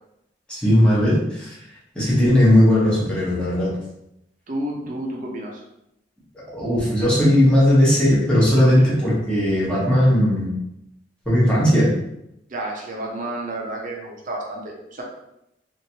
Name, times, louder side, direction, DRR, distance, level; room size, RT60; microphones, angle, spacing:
voice 1, 0.5-1.5 1.9-3.7 6.5-10.5 11.3-11.9, left 1 dB, 5° left, -8 dB, 1.0 m, -17 dB
voice 2, 4.5-5.6 8.8-8.9 12.5-15.0, right 1 dB, 45° right, -1 dB, 0.6 m, -30 dB
3.0 x 2.5 x 2.8 m, 0.83 s
head